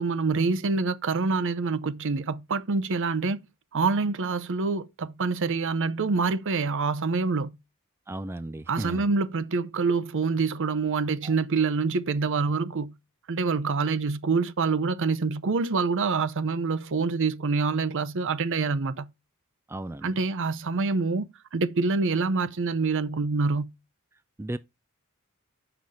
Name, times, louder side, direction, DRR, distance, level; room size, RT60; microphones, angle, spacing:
voice 1, 0.0-3.4 3.7-7.6 8.7-13.0 13.3-19.1 20.0-23.7, right 4 dB, 60° right, 0.6 m, -26 dB
voice 2, 8.1-9.0 11.2-11.3 19.7-20.1 24.4-24.6, right 1 dB, 10° right, 0.3 m, -35 dB
7.8 x 5.9 x 3.5 m
head